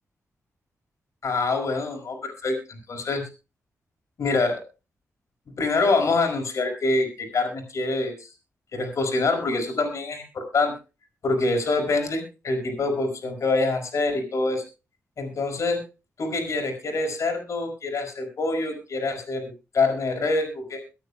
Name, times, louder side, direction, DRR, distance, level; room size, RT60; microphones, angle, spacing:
voice 1, 1.2-3.2 4.2-4.6 5.6-8.3 8.7-10.7 11.2-14.6 15.2-15.8 16.2-19.4 19.7-20.8, left 3 dB, 65° left, 4 dB, 5.2 m, -25 dB
24.0 x 9.1 x 2.2 m, 0.30 s
cardioid pair, 85°, 6 cm